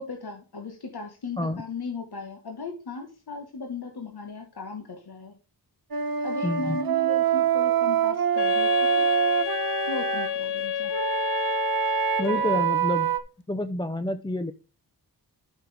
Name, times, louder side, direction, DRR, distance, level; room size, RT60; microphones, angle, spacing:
voice 1, 0.0-5.4 6.2-9.1 9.8-10.9, left 3 dB, 70° left, 3 dB, 1.5 m, -37 dB
Wind instrument woodwind instrument, 5.9-10.3 10.9-13.2, right 8 dB, 60° right, 1.3 m, -25 dB
voice 2, 6.4-6.8 12.2-13.1 13.5-14.5, left 1 dB, 10° left, 10 dB, 0.5 m, -28 dB
Wind instrument woodwind instrument 2, 8.4-12.8, left 9 dB, 90° left, 0.6 m, -30 dB
12.0 x 6.3 x 3.5 m, 0.33 s
wide cardioid pair, 85°, 40 cm